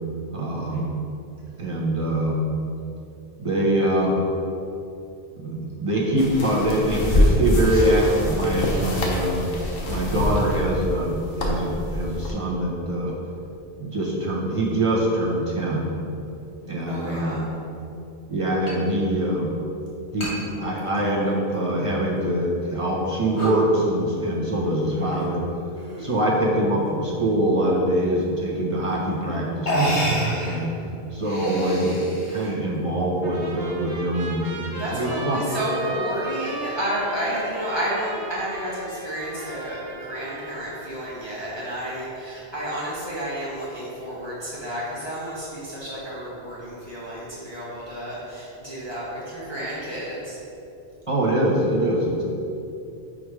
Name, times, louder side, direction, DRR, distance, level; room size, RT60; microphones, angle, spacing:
voice 1, 0.3-0.9 1.6-2.4 3.4-4.3 5.4-9.5 9.9-13.1 13.8-15.9 16.6-17.5 18.3-19.5 20.1-25.5 26.0-30.7 31.1-35.4 51.1-52.2, right 1 dB, 30° right, -4 dB, 1.0 m, -24 dB
sound 1, 6.2-12.3, left 1 dB, 60° left, 1.1 m, -25 dB
voice 2, 16.9-17.5 25.7-26.2 34.8-50.4, equal, 25° left, -9 dB, 1.3 m, -31 dB
sound 2, 18.7-18.8 19.1-19.2 20.2-20.4 20.8-21.5 22.1-22.2 22.8-23.0 23.3-23.6 24.9-25.3 26.1-26.6 28.5-28.6 29.2-29.3 29.6-30.6 31.1-32.5, right 1 dB, 90° left, 1.7 m, -27 dB
Trumpet, 33.2-40.9, right 3 dB, 65° right, 1.1 m, -36 dB
5.2 x 5.0 x 4.8 m, 2.7 s
omnidirectional pair, 1.1 m